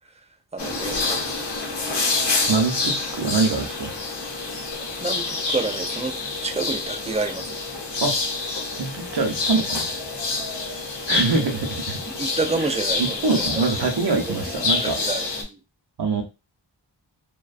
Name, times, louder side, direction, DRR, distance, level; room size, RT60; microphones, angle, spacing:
voice 1, 0.5-1.6 5.0-7.6 12.2-13.7 14.3-15.6, right 3 dB, 15° right, 6 dB, 0.3 m, -29 dB
sound 1, 0.6-15.4, left 3 dB, 65° left, 0.7 m, -27 dB
voice 2, 2.5-3.9 8.0-8.1 8.8-9.9 11.1-12.0 13.0-15.0 16.0-16.2, right 4 dB, 60° right, 2 dB, 0.7 m, -24 dB
2.4 x 2.2 x 2.4 m, 0.27 s
wide cardioid pair, 55°, 46 cm